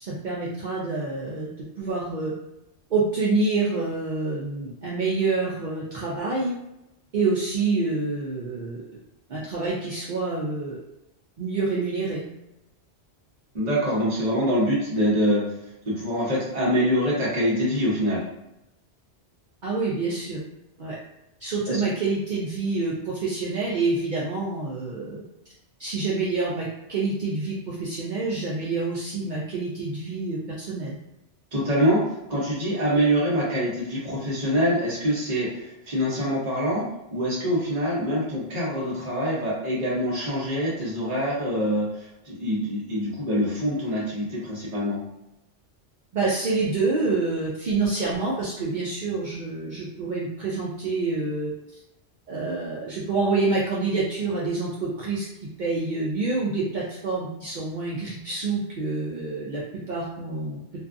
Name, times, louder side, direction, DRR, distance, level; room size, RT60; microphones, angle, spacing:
voice 1, 0.0-1.5 1.8-2.3 2.9-6.5 7.1-9.0 9.3-10.8 11.4-12.2 19.6-20.4 20.8-21.0 21.4-25.2 25.8-31.0 46.1-51.5 52.3-55.3 55.6-60.6, right 3 dB, 55° right, -6 dB, 0.5 m, -27 dB
voice 2, 13.5-15.4 15.9-18.2 21.7-21.8 31.5-32.0 32.3-35.6 35.9-36.9 37.1-41.9 42.3-45.0, equal, 40° right, -6 dB, 0.9 m, -24 dB
2.5 x 2.3 x 2.4 m, 0.88 s
omnidirectional pair, 1.2 m